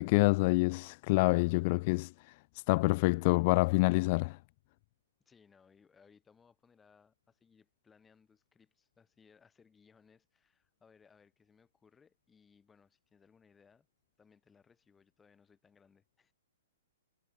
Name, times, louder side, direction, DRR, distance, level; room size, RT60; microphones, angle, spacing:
voice 1, 0.0-4.4, left 24 dB, 45° left, 0.3 m, -27 dB
voice 2, 5.2-13.9 14.2-16.3, left 6 dB, 15° left, 6.9 m, -65 dB
hypercardioid pair, 130°, 0 cm